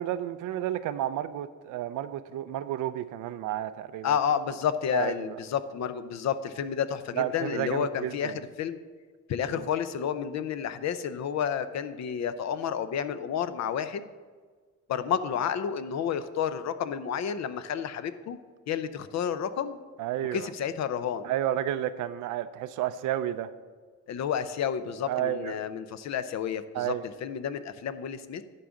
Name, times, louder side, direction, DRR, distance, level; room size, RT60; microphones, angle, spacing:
voice 1, 0.0-4.2 4.9-5.4 7.1-8.4 9.5-9.7 20.0-20.5 21.2-23.5 25.1-25.6 26.7-27.0, right 12 dB, 90° right, 12 dB, 0.6 m, -31 dB
voice 2, 4.0-8.8 9.3-14.1 14.9-18.4 18.7-19.8 20.3-21.3 24.1-26.9 27.2-28.4, left 8 dB, 65° left, 12 dB, 0.7 m, -30 dB
11.0 x 3.8 x 7.1 m, 1.5 s
cardioid pair, 90°, 30 cm